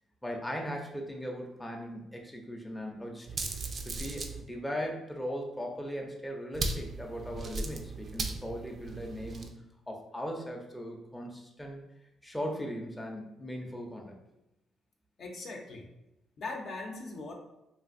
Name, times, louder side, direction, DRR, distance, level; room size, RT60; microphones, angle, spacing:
voice 1, 0.2-3.3 3.8-9.5 9.9-11.8 12.2-14.1, equal, 10° left, 0 dB, 0.5 m, -38 dB
sound 1, 3.3-4.4 6.5-9.5, right 3 dB, 45° right, 0.4 m, -37 dB
voice 2, 15.2-15.9 16.4-17.3, left 3 dB, 60° left, 0 dB, 0.6 m, -40 dB
3.2 x 2.5 x 2.5 m, 0.89 s
cardioid pair, 90°, 0 cm